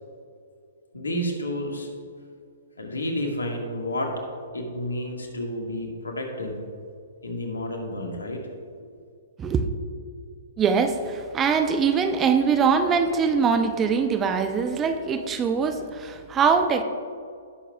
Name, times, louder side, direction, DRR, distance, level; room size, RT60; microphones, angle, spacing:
voice 1, 0.9-1.9 2.8-4.1 4.5-6.6 7.2-8.4 8.8-8.9, left 1 dB, 80° left, 1 dB, 1.8 m, -30 dB
voice 2, 10.6-16.8, right 5 dB, 20° right, 8 dB, 0.7 m, -22 dB
17.0 x 6.9 x 2.4 m, 2.3 s
figure-of-eight pair, 120°, 0 cm